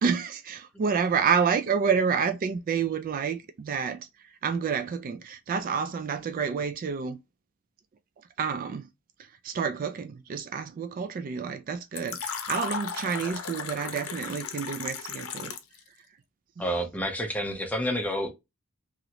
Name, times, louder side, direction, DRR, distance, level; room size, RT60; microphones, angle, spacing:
voice 1, 0.0-4.1 4.4-7.2 8.4-8.9 9.4-15.5, right 6 dB, 40° right, 0.3 m, -29 dB
Fill (with liquid), 12.0-15.8, left 6 dB, 85° left, 0.6 m, -35 dB
voice 2, 16.6-18.3, equal, 5° left, 0.6 m, -29 dB
3.0 x 2.5 x 2.8 m
head